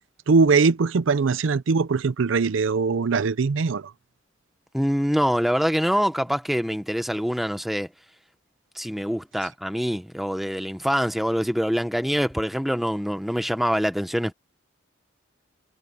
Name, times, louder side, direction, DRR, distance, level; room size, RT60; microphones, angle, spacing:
voice 1, 0.3-3.9, right 4 dB, 75° right, 0.5 m, -21 dB
voice 2, 4.7-7.9 8.8-14.3, equal, ahead, 0.9 m, -25 dB
head